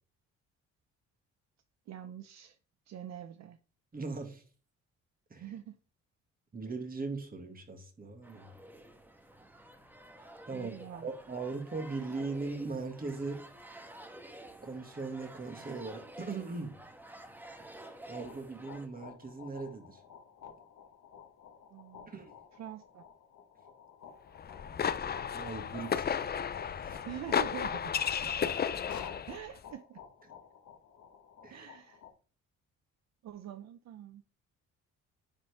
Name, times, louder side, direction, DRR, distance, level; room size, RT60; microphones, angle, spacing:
voice 1, 1.9-2.6 2.9-3.6 5.4-5.8 10.5-11.1 21.7-22.1 22.6-23.0 27.0-27.9 29.3-30.0 31.5-32.0 33.2-34.2, right 11 dB, 60° right, 0.7 m, -45 dB
voice 2, 3.9-4.4 5.3-5.5 6.5-8.5 10.5-13.5 14.6-16.8 18.1-20.0 22.1-22.3 25.3-26.2 26.8-27.0 31.4-31.7, right 3 dB, 30° right, 2.0 m, -39 dB
sound 1, 8.2-18.9, right 1 dB, 5° right, 1.2 m, -51 dB
sound 2, 18.1-32.1, left 7 dB, 70° left, 1.4 m, -52 dB
sound 3, 24.4-29.4, left 7 dB, 35° left, 0.5 m, -33 dB
9.9 x 4.5 x 3.5 m
cardioid pair, 90°, 30 cm